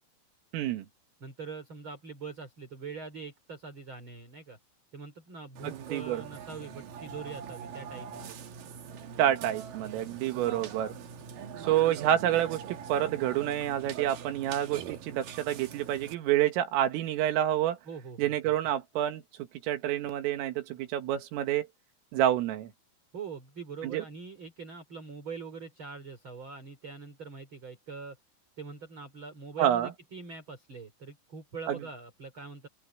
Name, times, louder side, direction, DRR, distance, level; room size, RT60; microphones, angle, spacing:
voice 1, 0.5-0.9 5.6-6.2 9.2-10.9 11.6-17.8 18.2-19.2 19.6-21.7 22.1-22.7 23.8-24.0 29.6-29.9 31.7-31.8, right 12 dB, 80° right, 4.4 m, -28 dB
voice 2, 1.2-4.6 4.9-8.4 10.3-10.7 17.9-18.5 23.1-28.2 28.6-32.7, right 5 dB, 25° right, 4.5 m, -43 dB
Burping eructation, 5.6-16.1, right 7 dB, 60° right, 2.6 m, -43 dB
open air
omnidirectional pair, 5.8 m